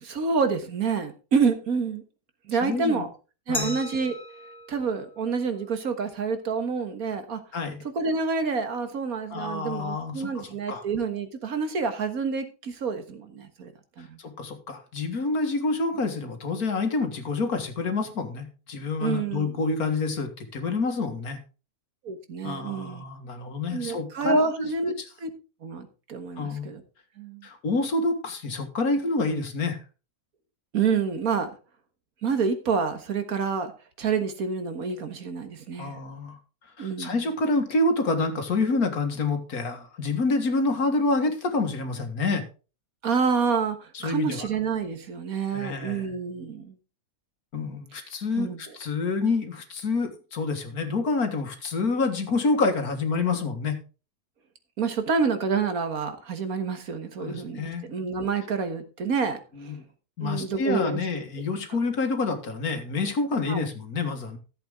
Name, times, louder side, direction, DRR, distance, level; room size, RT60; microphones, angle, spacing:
voice 1, 0.0-2.0 2.5-3.1 3.5-4.2 4.7-7.4 8.0-14.2 19.0-19.5 22.0-23.0 23.7-24.9 25.2-25.3 25.6-26.8 27.2-27.5 30.7-31.5 32.2-33.7 34.0-36.0 36.8-37.2 43.0-46.8 48.4-48.8 54.8-59.7 60.2-61.2 63.5-63.6, right 5 dB, 75° right, 1.9 m, -28 dB
voice 2, 2.6-3.1 3.5-3.8 7.5-7.8 9.3-10.8 14.0-21.4 22.4-24.7 26.4-26.7 27.4-29.8 35.8-36.4 36.8-42.4 43.9-44.5 45.5-46.1 47.5-53.8 57.2-57.8 59.6-59.8 60.2-64.4, left 3 dB, 75° left, 2.2 m, -27 dB
Glass, 3.5-6.3, left 2 dB, 30° left, 1.4 m, -38 dB
14.0 x 7.9 x 3.7 m
omnidirectional pair, 1.6 m